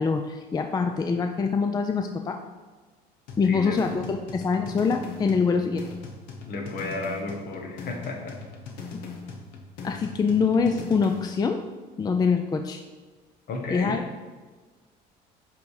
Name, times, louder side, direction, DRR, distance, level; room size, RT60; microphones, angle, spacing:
voice 1, 0.0-2.4 3.4-5.8 9.8-11.6 12.0-12.8 13.7-14.0, left 5 dB, 20° left, 6 dB, 0.4 m, -24 dB
sound 1, 3.3-11.3, left 4 dB, 85° left, 1.0 m, -40 dB
voice 2, 3.4-3.8 6.5-8.4 13.5-14.0, left 3 dB, 55° left, 2 dB, 1.4 m, -33 dB
7.7 x 3.5 x 4.8 m, 1.4 s
cardioid pair, 110°, 19 cm